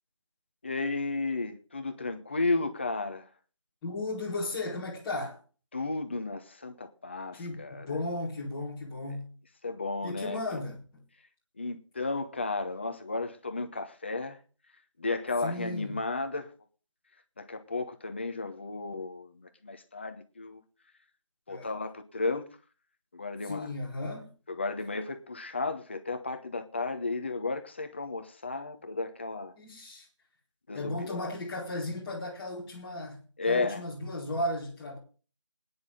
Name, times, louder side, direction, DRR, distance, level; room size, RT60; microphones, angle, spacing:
voice 1, 0.6-3.3 5.7-7.9 9.6-10.6 11.6-14.4 15.0-16.5 17.4-20.6 21.5-22.4 23.1-23.7 24.5-29.5 30.7-31.3 33.4-33.8, left 3 dB, 25° left, 1.0 m, -33 dB
voice 2, 3.8-5.4 7.3-9.3 10.0-11.0 15.4-16.0 21.5-21.7 23.4-24.3 29.6-30.1 30.7-35.0, left 2 dB, 5° left, 1.8 m, -35 dB
21.0 x 9.8 x 3.7 m
figure-of-eight pair, 170°, 16 cm